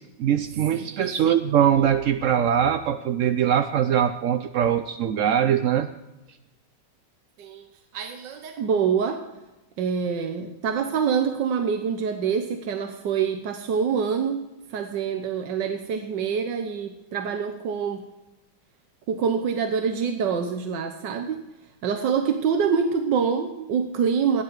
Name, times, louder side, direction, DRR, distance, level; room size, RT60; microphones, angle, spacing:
voice 1, 0.0-5.9, right 9 dB, 65° right, 9 dB, 0.8 m, -22 dB
voice 2, 0.7-1.1 7.4-7.7 7.9-9.2 9.8-14.4 14.7-18.0 19.1-21.4 21.8-24.4, right 6 dB, 85° right, 6 dB, 1.6 m, -25 dB
18.0 x 10.0 x 4.7 m, 1.0 s
omnidirectional pair, 1.9 m